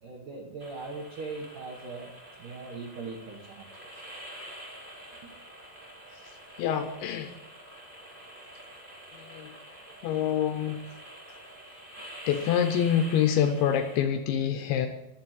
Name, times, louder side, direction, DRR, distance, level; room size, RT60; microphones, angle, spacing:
voice 1, 0.0-2.1 2.4-4.0, right 3 dB, 70° right, -2 dB, 1.9 m, -40 dB
sound 1, 0.6-14.0, equal, 25° right, 1.1 m, -47 dB
voice 2, 6.6-7.3 9.1-9.5 10.0-10.8 12.3-14.9, left 9 dB, 80° left, 6 dB, 2.7 m, -26 dB
10.5 x 7.2 x 7.4 m, 0.90 s
omnidirectional pair, 5.7 m